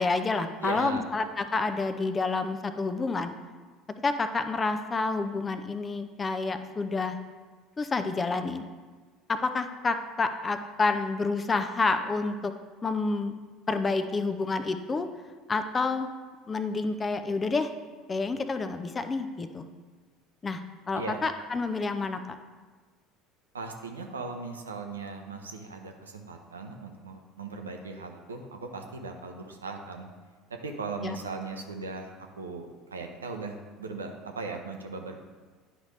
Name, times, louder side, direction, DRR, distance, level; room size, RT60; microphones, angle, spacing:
voice 1, 0.0-3.3 4.0-7.2 7.8-8.6 9.3-12.5 12.8-13.3 13.7-15.1 15.5-16.1 16.5-17.7 18.1-19.7 20.4-20.6 20.9-22.2 31.0-31.2, left 3 dB, 25° left, 9 dB, 0.6 m, -29 dB
voice 2, 0.6-1.1 20.9-21.2 23.5-30.1 30.5-35.1, right 3 dB, 85° right, 4 dB, 0.7 m, -38 dB
10.0 x 5.0 x 3.2 m, 1.4 s
figure-of-eight pair, 65°, 0 cm